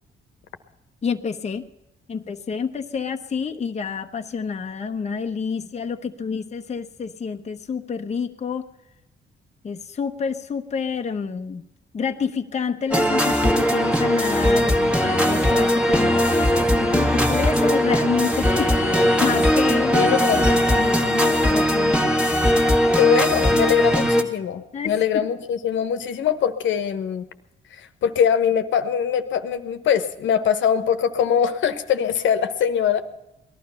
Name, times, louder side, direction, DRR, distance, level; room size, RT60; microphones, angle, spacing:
voice 1, 1.0-1.7 2.1-8.7 9.6-11.6 11.9-22.0 24.7-25.3, left 6 dB, 35° left, 5 dB, 0.9 m, -28 dB
sound 1, 12.9-24.2, equal, 5° right, 1.7 m, -19 dB
voice 2, 19.9-20.5 22.9-27.2 28.0-33.0, left 8 dB, 70° left, 9 dB, 1.2 m, -22 dB
18.5 x 12.0 x 5.6 m, 0.91 s
cardioid pair, 90°, 20 cm